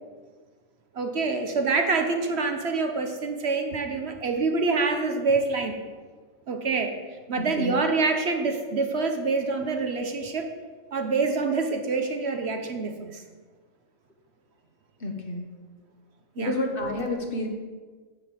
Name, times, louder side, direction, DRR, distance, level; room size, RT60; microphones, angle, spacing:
voice 1, 0.9-5.8 6.5-6.9 7.3-10.5 10.9-13.2 16.4-16.5, right 4 dB, 60° right, 5 dB, 1.1 m, -26 dB
voice 2, 7.3-7.8 15.0-15.5 16.4-17.5, left 2 dB, 45° left, 3 dB, 1.4 m, -30 dB
10.0 x 5.3 x 7.7 m, 1.4 s
omnidirectional pair, 1.3 m